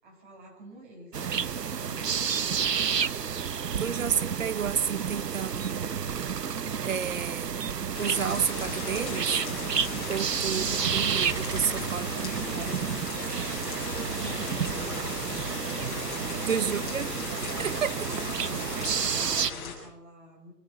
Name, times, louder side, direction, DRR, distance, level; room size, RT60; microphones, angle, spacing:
voice 1, 0.0-3.5 10.7-11.3 11.9-12.8 13.8-15.4 15.7-16.1 16.6-17.7 18.0-20.5, equal, 30° right, 7.5 m, -48 dB
sound 1, 1.1-19.5, right 7 dB, 80° right, 1.2 m, -30 dB
voice 2, 3.8-5.8 6.8-7.5 8.0-9.5 10.1-12.7 16.5-17.1 17.4-18.0, right 7 dB, 55° right, 1.1 m, -31 dB
sound 2, 7.9-19.7, left 5 dB, 30° left, 6.8 m, -37 dB
26.0 x 12.5 x 9.8 m
hypercardioid pair, 160°, 48 cm